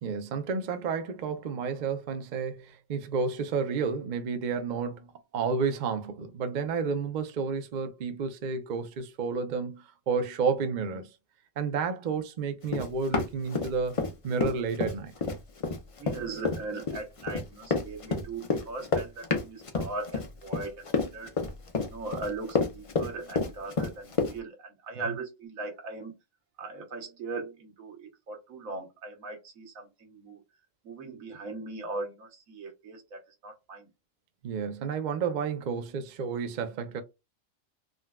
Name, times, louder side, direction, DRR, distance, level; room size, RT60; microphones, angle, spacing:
voice 1, 0.0-11.1 11.6-15.1 34.4-37.0, right 5 dB, 60° right, 0.5 m, -31 dB
Run, 12.7-14.1 14.4-24.3, left 4 dB, 45° left, 0.4 m, -29 dB
voice 2, 16.0-21.3 21.8-26.1 26.6-30.4 30.8-33.9, right 3 dB, 80° right, 1.4 m, -39 dB
3.8 x 2.2 x 2.3 m
omnidirectional pair, 1.5 m